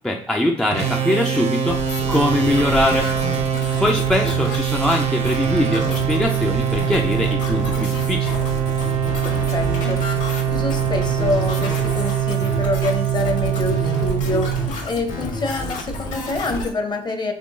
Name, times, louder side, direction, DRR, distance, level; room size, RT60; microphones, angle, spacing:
voice 1, 0.0-3.1 3.8-8.4, left 1 dB, 5° left, 1 dB, 0.4 m, -22 dB
sound 1, 0.7-15.3, right 9 dB, 50° right, 0.7 m, -23 dB
sound 2, 1.7-16.7, left 2 dB, 60° left, 1.6 m, -29 dB
voice 2, 9.2-17.3, left 2 dB, 30° left, 5 dB, 0.8 m, -26 dB
3.6 x 3.1 x 3.8 m, 0.66 s
cardioid pair, 105°, 15 cm